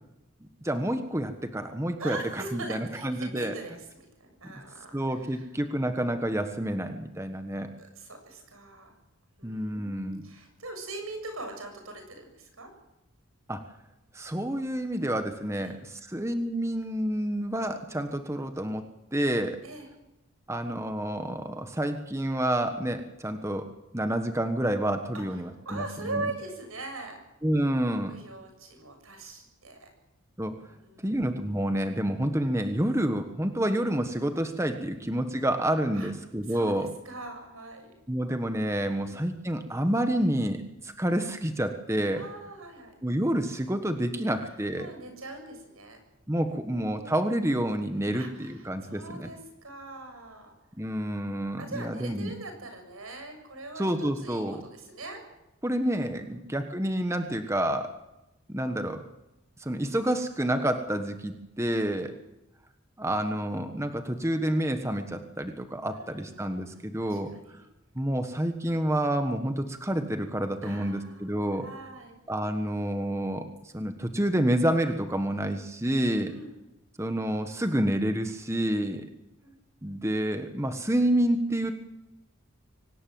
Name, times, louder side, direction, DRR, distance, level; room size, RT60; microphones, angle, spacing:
voice 1, 0.6-3.5 4.9-7.7 9.4-10.2 13.5-13.6 14.1-19.6 20.5-23.7 23.9-26.3 27.4-28.1 30.4-30.6 31.0-36.9 38.1-42.3 43.0-44.9 46.3-49.3 50.8-52.3 53.8-54.6 55.6-57.9 58.5-59.0 59.6-62.1 63.0-67.3 67.9-71.7 72.3-76.3 77.0-79.1 79.8-81.7, right 1 dB, 15° right, 7 dB, 1.3 m, -29 dB
voice 2, 2.0-5.5 7.8-8.9 9.4-12.7 15.6-15.8 19.6-19.9 25.1-27.2 27.9-29.9 30.7-31.1 35.9-36.1 36.5-37.9 38.9-39.2 42.1-42.9 44.8-46.0 46.4-47.2 48.1-50.5 51.6-55.2 56.2-56.4 61.9-62.2 65.9-67.7 70.6-72.2 76.2-76.6 78.9-79.0 79.4-79.5, right 2 dB, 80° right, 5 dB, 7.4 m, -42 dB
24.5 x 19.0 x 7.8 m, 0.94 s
head